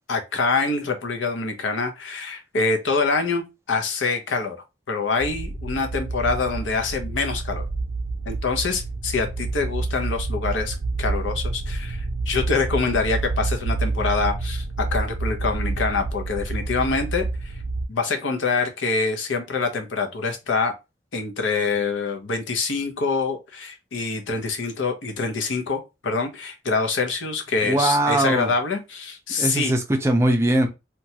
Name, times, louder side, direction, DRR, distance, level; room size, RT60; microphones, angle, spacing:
voice 1, 0.1-4.6 4.9-7.7 8.3-17.6 17.9-20.7 21.1-29.7, left 4 dB, 80° left, 0.7 m, -25 dB
sound 1, 5.2-17.9, right 3 dB, 90° right, 0.5 m, -28 dB
voice 2, 27.6-28.5 29.4-30.7, right 1 dB, 15° right, 0.4 m, -20 dB
2.9 x 2.2 x 2.8 m
head